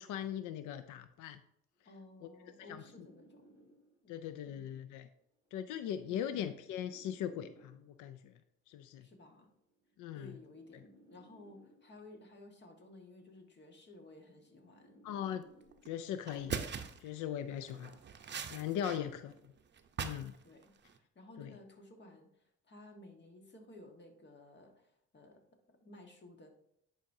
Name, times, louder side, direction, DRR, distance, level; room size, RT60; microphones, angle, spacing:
voice 1, 0.0-1.4 2.2-2.3 2.7-2.8 4.1-5.1 5.5-8.3 8.7-9.1 10.0-10.3 15.0-15.5 15.9-16.6 17.0-17.9 18.5-19.3 20.0-20.3 21.4-21.6, left 10 dB, 90° left, 11 dB, 0.5 m, -39 dB
voice 2, 1.8-3.5 4.0-4.7 5.9-6.5 9.0-9.5 10.1-15.0 17.7-18.0 20.4-25.4 25.7-26.5, left 2 dB, 35° left, 4 dB, 1.4 m, -56 dB
sound 1, 1.8-4.2 5.2-8.2 9.2-12.2 13.2-16.2, equal, 10° right, 2.3 m, -64 dB
sound 2, 15.7-15.9 16.3-17.1 17.6-19.0 19.3-20.4 20.6-21.0, right 6 dB, 35° right, 0.7 m, -41 dB
10.5 x 5.0 x 2.7 m, 0.76 s
cardioid pair, 90°, 30 cm